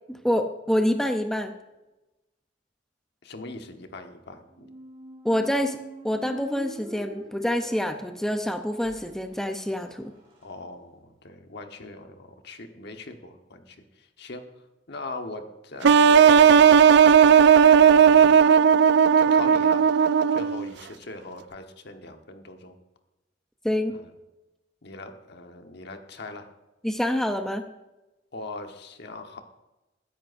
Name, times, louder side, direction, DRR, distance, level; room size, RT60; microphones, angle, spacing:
voice 1, 0.1-1.5 5.2-5.8 6.0-10.1 23.6-23.9 26.8-27.7, equal, 5° left, 6 dB, 0.6 m, -26 dB
voice 2, 3.2-4.7 10.4-14.4 14.9-16.9 17.6-18.5 19.2-19.9 20.3-22.7 23.9-24.0 24.8-26.5 28.3-29.4, left 2 dB, 60° left, 5 dB, 1.2 m, -40 dB
Squeak, 4.5-10.5, right 1 dB, 30° right, 4.3 m, -44 dB
sound 1, 15.8-20.7, right 7 dB, 60° right, 0.4 m, -15 dB
21.0 x 10.0 x 2.6 m, 1.0 s
head